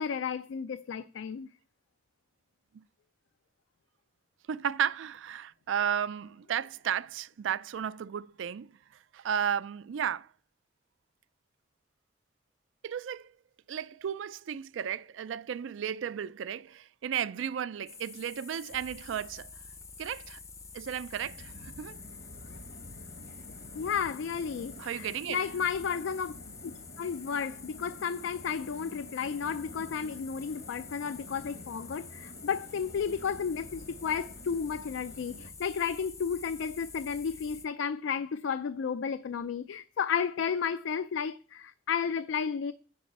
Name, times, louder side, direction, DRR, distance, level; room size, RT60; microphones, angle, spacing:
voice 1, 0.0-1.5 23.7-26.3 26.6-26.7 27.0-42.7, left 6 dB, 85° left, 0.4 m, -33 dB
voice 2, 4.5-8.7 9.1-10.3 12.8-13.3 13.7-19.5 20.0-20.4 20.7-22.0 24.8-25.4, right 8 dB, 85° right, 0.4 m, -34 dB
sound 1, 17.9-37.7, left 5 dB, 15° left, 0.5 m, -48 dB
sound 2, 21.2-35.5, left 1 dB, 60° left, 0.9 m, -50 dB
9.5 x 4.8 x 5.3 m
head